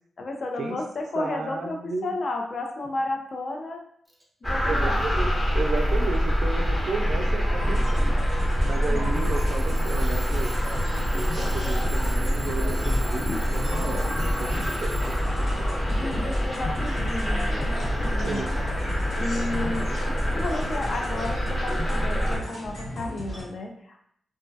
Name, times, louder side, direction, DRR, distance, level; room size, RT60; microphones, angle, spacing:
voice 1, 0.2-3.8 4.4-5.1 8.7-9.2 13.2-13.4 15.9-18.5 19.1-19.9 20.3-24.0, left 2 dB, 60° left, 2 dB, 0.5 m, -32 dB
voice 2, 1.2-2.1 4.4-8.1 8.6-10.6 11.1-15.9 18.2-18.4, right 4 dB, 70° right, 4 dB, 0.3 m, -33 dB
Alarm / Clock, 4.1-4.2 4.8-5.2 5.8-6.2 7.0-7.1 9.1-15.5, equal, 5° right, 0.6 m, -44 dB
sound 1, 4.4-22.4, equal, 30° left, 0.7 m, -25 dB
sound 2, 7.6-23.4, equal, 85° left, 1.3 m, -35 dB
2.2 x 2.1 x 2.7 m, 0.67 s
cardioid pair, 70°, 0 cm